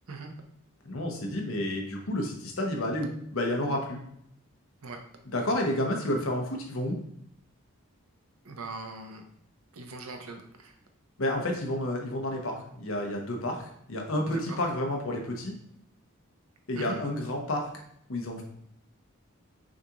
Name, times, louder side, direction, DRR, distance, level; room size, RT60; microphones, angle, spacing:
voice 1, 0.8-4.0 5.3-7.0 11.2-15.5 16.7-17.6 18.1-18.4, left 1 dB, 70° left, 1 dB, 0.9 m, -30 dB
voice 2, 8.4-9.2 9.7-10.7 14.3-14.6 16.7-17.0, right 3 dB, 85° right, 4 dB, 0.7 m, -40 dB
6.2 x 2.5 x 2.9 m, 0.71 s
head